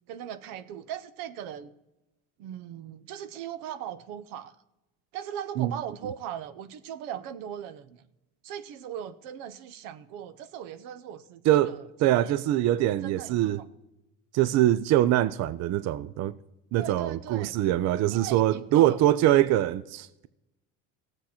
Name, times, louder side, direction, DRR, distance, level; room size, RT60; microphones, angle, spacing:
voice 1, 0.1-1.7 2.4-4.5 5.1-8.0 8.4-11.9 12.3-12.4 13.0-13.7 16.8-17.6 18.1-19.0, right 9 dB, 85° right, 0.8 m, -39 dB
voice 2, 11.5-13.6 14.3-16.4 16.7-20.3, right 13 dB, 55° right, 0.5 m, -23 dB
16.5 x 8.0 x 4.3 m
cardioid pair, 125°, 33 cm